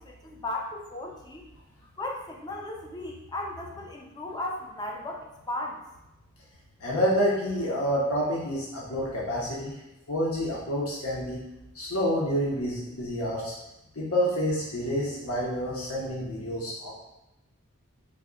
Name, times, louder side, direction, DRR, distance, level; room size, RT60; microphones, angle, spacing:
voice 1, 0.0-1.4 2.0-5.8, left 1 dB, 20° left, 0 dB, 0.4 m, -36 dB
voice 2, 6.8-9.7 10.1-11.4 11.7-13.5 14.0-16.9, equal, 75° left, -5 dB, 0.7 m, -28 dB
3.4 x 2.0 x 3.6 m, 0.93 s
head